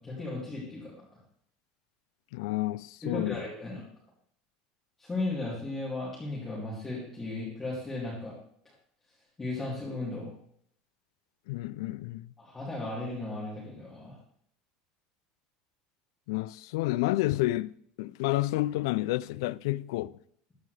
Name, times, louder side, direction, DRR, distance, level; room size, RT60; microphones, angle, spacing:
voice 1, 0.0-0.9 3.0-3.8 5.0-8.3 9.4-10.3 12.4-14.2, left 2 dB, 10° left, 2.5 m, -35 dB
voice 2, 2.3-3.5 11.5-12.3 16.3-17.7 18.0-20.2, left 17 dB, 90° left, 0.4 m, -30 dB
14.0 x 9.3 x 3.3 m
cardioid pair, 175°, 2 cm